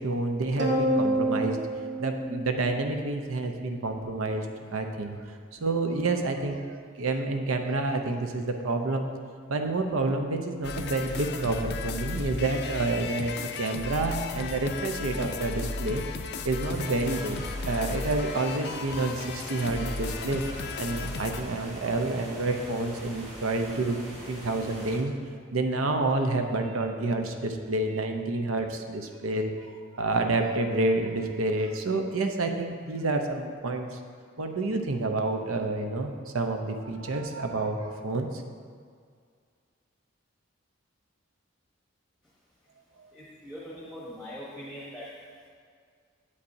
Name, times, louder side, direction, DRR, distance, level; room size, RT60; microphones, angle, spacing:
voice 1, 0.0-1.6 2.0-4.5 4.7-5.2 5.6-9.1 9.5-16.0 16.4-20.4 20.8-24.0 24.3-25.1 25.5-29.5 29.9-34.0 34.4-38.4 43.0-43.1, right 2 dB, 85° right, 5 dB, 0.7 m, -29 dB
sound 1, 0.6-3.2, right 1 dB, 55° right, 0.9 m, -28 dB
sound 2, 10.6-21.4, left 4 dB, 50° left, 0.4 m, -35 dB
sound 3, 16.7-25.0, equal, 30° right, 1.8 m, -43 dB
voice 2, 43.1-45.1, equal, ahead, -6 dB, 0.9 m, -41 dB
8.5 x 8.0 x 2.7 m, 2.1 s
head